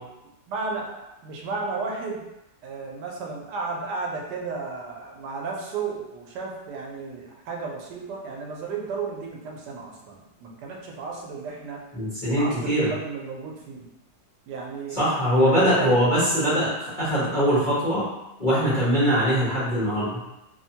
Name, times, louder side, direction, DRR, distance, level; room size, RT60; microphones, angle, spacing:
voice 1, 0.5-2.2 2.6-11.8 12.3-13.8 14.5-15.0 15.4-16.0, right 4 dB, 85° right, -1 dB, 1.2 m, -33 dB
voice 2, 12.0-12.9 15.0-18.1 18.4-20.2, equal, 35° left, -11 dB, 0.9 m, -22 dB
3.2 x 2.1 x 2.7 m, 0.96 s
omnidirectional pair, 1.8 m